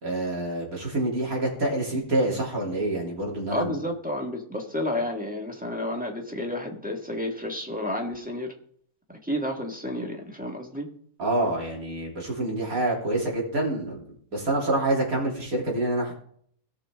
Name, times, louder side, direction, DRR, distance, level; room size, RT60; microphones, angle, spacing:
voice 1, 0.0-3.8 11.2-16.1, right 1 dB, 70° right, -2 dB, 3.5 m, -27 dB
voice 2, 3.5-8.5 9.1-10.9, left 1 dB, 5° right, 0 dB, 1.6 m, -31 dB
17.5 x 6.1 x 3.6 m, 0.62 s
omnidirectional pair, 1.6 m